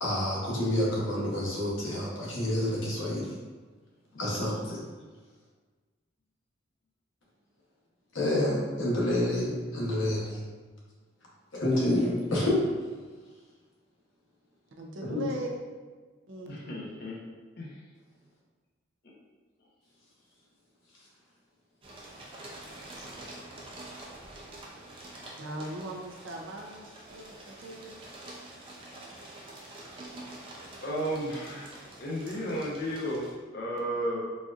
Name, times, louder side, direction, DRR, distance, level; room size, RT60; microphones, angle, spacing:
voice 1, 0.0-3.3 4.2-4.8 8.1-10.4 11.5-12.6 15.1-15.2 23.0-23.2, left 1 dB, 80° left, -5 dB, 1.0 m, -28 dB
voice 2, 14.8-15.5 16.3-16.6 25.4-28.0, right 1 dB, 80° right, 1 dB, 0.5 m, -39 dB
voice 3, 16.5-17.2 17.6-17.9 30.8-31.7 32.0-34.2, equal, 50° left, -4 dB, 0.7 m, -33 dB
sound 1, 21.8-33.3, right 1 dB, 25° right, 0.5 m, -46 dB
4.1 x 2.5 x 2.4 m, 1.4 s
head